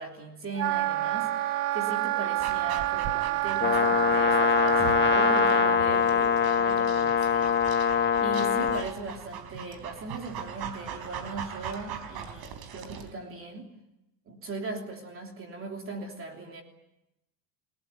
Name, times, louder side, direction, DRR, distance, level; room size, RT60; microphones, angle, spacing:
voice 1, 0.0-13.7 14.3-16.6, right 3 dB, 25° right, 3 dB, 3.2 m, -39 dB
Wind instrument woodwind instrument, 0.6-5.8, right 16 dB, 85° right, 1.2 m, -28 dB
Dog, 2.4-13.1, right 8 dB, 50° right, 3.7 m, -41 dB
Brass instrument, 3.6-8.9, left 7 dB, 25° left, 1.5 m, -23 dB
29.5 x 18.5 x 9.4 m, 0.91 s
cardioid pair, 155°, 47 cm